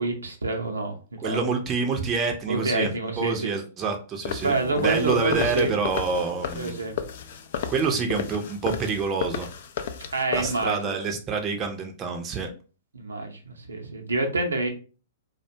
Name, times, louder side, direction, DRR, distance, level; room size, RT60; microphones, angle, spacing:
voice 1, 0.0-1.4 2.5-3.5 4.4-5.7 6.6-6.9 10.1-11.0 12.9-14.7, right 3 dB, 85° right, 3 dB, 0.6 m, -27 dB
voice 2, 1.2-2.9 3.2-6.7 7.7-9.5 10.3-12.5, right 4 dB, 25° right, 3 dB, 0.5 m, -27 dB
sound 1, 4.2-10.6, left 7 dB, 60° left, 0.3 m, -34 dB
Bowed string instrument, 4.5-7.7, left 3 dB, 25° left, 0.9 m, -42 dB
2.4 x 2.1 x 2.7 m, 0.35 s
hypercardioid pair, 115°, 0 cm